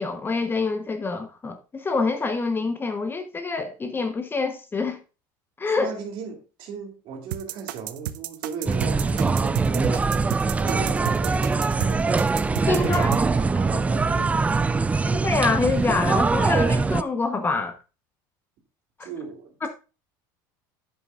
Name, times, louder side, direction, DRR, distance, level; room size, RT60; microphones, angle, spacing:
voice 1, 0.0-5.0 5.6-5.9 12.7-13.1 15.0-17.7 19.6-19.7, left 4 dB, 20° left, 1.0 m, -26 dB
voice 2, 5.8-12.2 12.8-14.6 19.0-19.7, right 6 dB, 55° right, 3.1 m, -36 dB
sound 1, 7.3-13.2, right 14 dB, 80° right, 0.6 m, -32 dB
sound 2, 8.7-17.0, right 4 dB, 15° right, 0.3 m, -22 dB
10.5 x 8.5 x 2.5 m
supercardioid pair, 105°, 11 cm